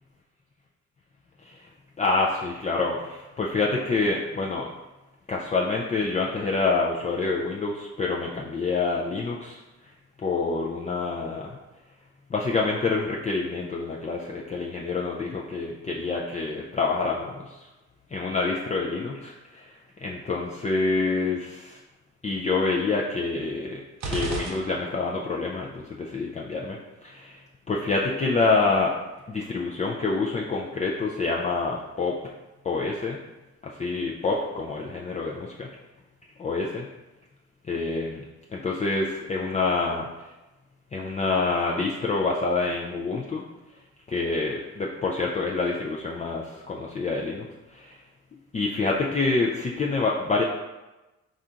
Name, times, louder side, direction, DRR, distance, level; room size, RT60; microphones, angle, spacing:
voice 1, 2.0-4.7 5.3-9.6 10.2-11.6 12.3-17.7 18.1-19.7 20.0-21.8 22.2-23.8 24.1-27.4 27.7-28.9 29.3-32.2 32.6-33.2 33.6-35.7 36.4-36.9 37.6-38.2 38.5-40.3 40.9-43.4 44.1-48.0 48.5-50.4, left 3 dB, 25° left, -3 dB, 0.4 m, -27 dB
sound 1, 24.0-25.3, right 3 dB, 60° right, 0.8 m, -34 dB
4.2 x 2.5 x 3.7 m, 1.1 s
cardioid pair, 90°, 30 cm